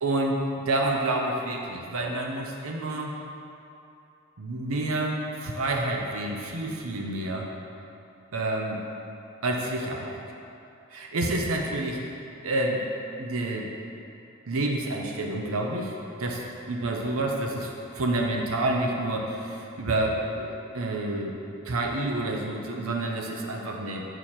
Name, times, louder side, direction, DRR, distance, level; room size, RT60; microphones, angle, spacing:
voice 1, 0.0-3.1 4.4-7.5 8.3-8.8 9.4-10.2 10.9-12.0 12.4-12.8 13.2-13.7 14.5-21.4 21.6-24.1, right 2 dB, 85° right, 0 dB, 0.7 m, -29 dB
6.9 x 5.9 x 4.3 m, 2.7 s
head